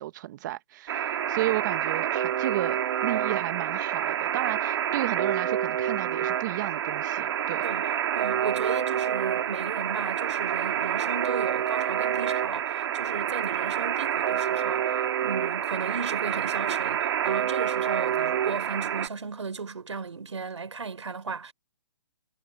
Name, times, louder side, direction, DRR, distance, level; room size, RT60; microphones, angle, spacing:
voice 1, 0.0-7.6, right 15 dB, 40° right, 1.0 m, -33 dB
Alarm, 0.9-19.1, right 9 dB, 60° right, 2.5 m, -28 dB
voice 2, 8.1-14.9 15.2-21.5, right 5 dB, 90° right, 4.9 m, -35 dB
hypercardioid pair, 145°, 15 cm